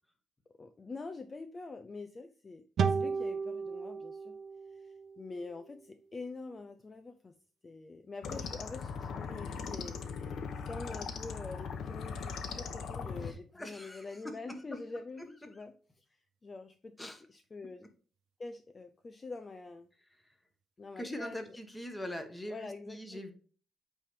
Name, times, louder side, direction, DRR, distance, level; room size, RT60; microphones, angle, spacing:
voice 1, 0.6-4.4 4.7-7.3 7.6-10.3 10.6-17.9 18.4-19.9 20.8-21.6 22.5-23.2, left 3 dB, 30° left, 8 dB, 0.6 m, -45 dB
sound 1, 2.8-6.1, right 6 dB, 60° right, 0.7 m, -35 dB
sound 2, 8.2-13.3, left 5 dB, 65° left, 0.9 m, -39 dB
voice 2, 13.2-14.8 15.2-15.3 15.5-15.6 17.0-17.2 20.1-20.2 21.0-23.3, equal, 10° left, 5 dB, 1.4 m, -43 dB
8.3 x 3.3 x 5.2 m, 0.42 s
cardioid pair, 90°, 0 cm